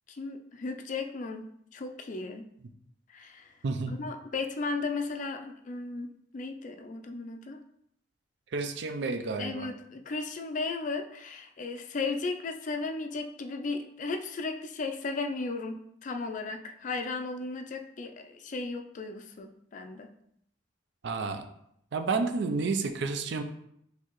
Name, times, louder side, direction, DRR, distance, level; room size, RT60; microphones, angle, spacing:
voice 1, 0.1-1.5 1.7-2.5 3.1-3.6 3.9-7.6 9.4-20.1, left 3 dB, 40° left, 5 dB, 0.4 m, -35 dB
voice 2, 8.5-9.7 21.0-21.4 21.9-23.4, right 4 dB, 65° right, 8 dB, 0.4 m, -30 dB
4.6 x 3.4 x 3.0 m, 0.73 s
head